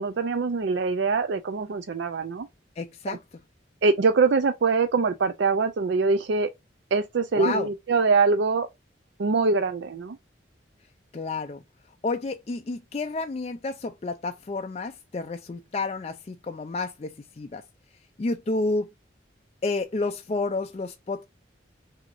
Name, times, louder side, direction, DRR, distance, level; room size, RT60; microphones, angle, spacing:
voice 1, 0.0-2.5 3.1-3.2 3.8-6.5 6.9-8.7 9.2-10.2, right 4 dB, 65° right, 0.4 m, -23 dB
voice 2, 2.8-3.2 7.4-7.7 11.1-11.6 12.0-17.6 18.2-18.9 19.6-21.3, left 3 dB, 30° left, 0.4 m, -30 dB
6.0 x 2.8 x 2.5 m
head